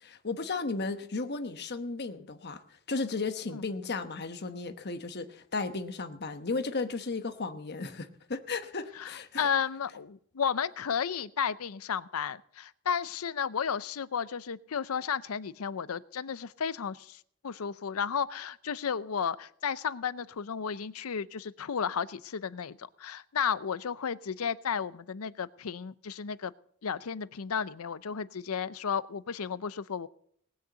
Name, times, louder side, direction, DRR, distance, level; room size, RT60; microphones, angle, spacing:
voice 1, 0.0-9.5, left 3 dB, 50° left, 8 dB, 1.1 m, -35 dB
voice 2, 9.4-26.5 26.8-30.1, left 7 dB, 85° left, 16 dB, 0.6 m, -33 dB
19.0 x 6.5 x 8.0 m, 0.65 s
head